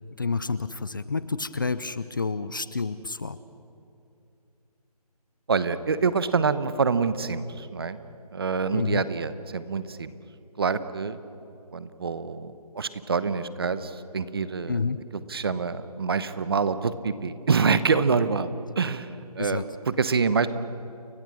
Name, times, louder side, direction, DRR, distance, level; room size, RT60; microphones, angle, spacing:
voice 1, 0.2-3.4 8.7-9.0 14.7-15.0 19.4-19.6, left 4 dB, 30° left, 15 dB, 0.5 m, -29 dB
voice 2, 5.5-8.0 8.3-10.1 10.6-11.2 11.7-14.8 15.1-20.5, right 5 dB, 35° right, 13 dB, 1.0 m, -26 dB
30.0 x 22.5 x 6.3 m, 2.6 s
figure-of-eight pair, 170°, 20 cm